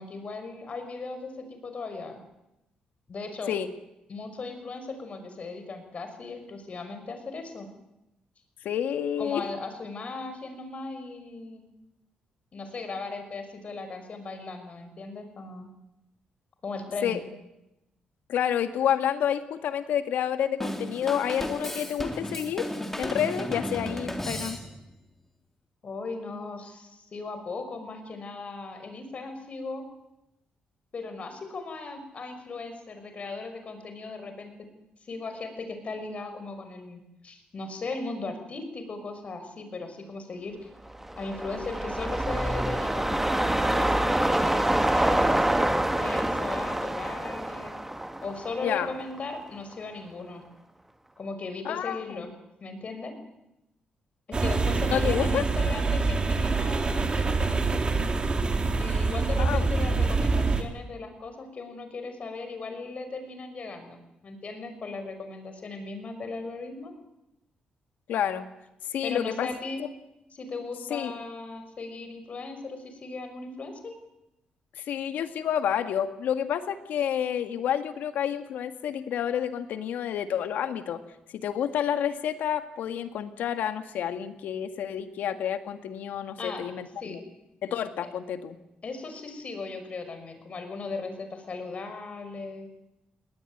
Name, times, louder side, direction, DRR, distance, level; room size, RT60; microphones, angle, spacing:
voice 1, 0.0-2.2 3.1-3.5 4.1-7.7 9.2-11.6 12.5-15.7 16.6-17.2 25.8-29.8 30.9-34.5 35.1-40.7 41.2-47.8 48.2-50.4 51.2-52.3 52.6-53.1 54.3-58.0 58.8-66.9 69.0-69.8 70.3-73.9 86.4-86.6 87.0-87.2 88.8-92.7, left 3 dB, 50° left, 8 dB, 5.9 m, -37 dB
voice 2, 8.6-9.5 17.0-17.2 18.3-22.7 23.0-24.6 48.6-48.9 51.6-52.2 54.9-55.4 59.4-59.7 68.1-68.5 68.9-69.5 69.8-69.9 70.9-71.1 74.8-81.0 81.3-87.2 87.6-88.6, left 9 dB, 85° left, 9 dB, 1.9 m, -29 dB
Drum kit / Drum, 20.6-25.0, left 1 dB, 10° left, 3.4 m, -34 dB
sound 1, 40.9-49.4 49.7-49.8, right 1 dB, 10° right, 1.7 m, -26 dB
sound 2, 54.3-60.6, right 3 dB, 35° right, 3.3 m, -25 dB
20.0 x 19.5 x 9.4 m, 0.90 s
cardioid pair, 80°, 3 cm